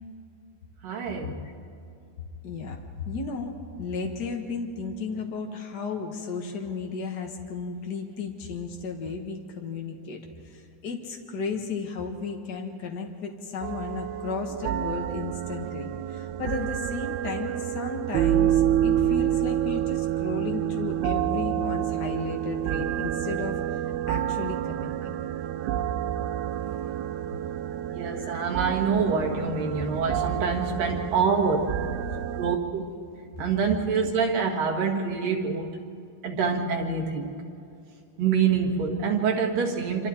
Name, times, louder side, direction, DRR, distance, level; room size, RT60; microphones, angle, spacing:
voice 1, 0.8-1.4 27.9-31.6 32.1-32.8 33.4-35.7 36.2-37.3 38.2-40.1, right 5 dB, 65° right, 1 dB, 3.5 m, -26 dB
voice 2, 2.4-2.8 3.0-23.6 24.1-25.1 28.2-28.3, left 4 dB, 70° left, 2 dB, 0.9 m, -34 dB
sound 1, 13.6-32.6, right 11 dB, 85° right, 2.6 m, -28 dB
27.0 x 26.0 x 4.5 m, 2.6 s
omnidirectional pair, 4.3 m